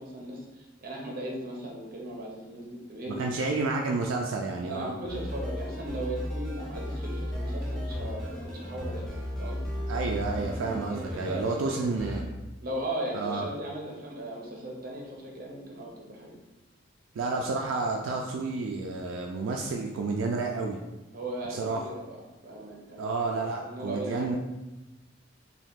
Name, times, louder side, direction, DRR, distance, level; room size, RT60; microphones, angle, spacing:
voice 1, 0.0-3.6 4.6-9.1 9.4-9.7 10.9-11.9 12.6-16.3 21.1-22.2 22.4-23.4 23.6-24.4, right 1 dB, 50° right, -1 dB, 0.7 m, -37 dB
voice 2, 3.1-4.9 9.9-12.3 13.1-13.5 17.2-20.8 21.5-21.8 23.0-24.4, right 3 dB, 85° right, 1 dB, 0.3 m, -30 dB
sound 1, 5.1-12.2, equal, 5° left, 0.5 m, -35 dB
2.7 x 2.3 x 3.5 m, 1.0 s
head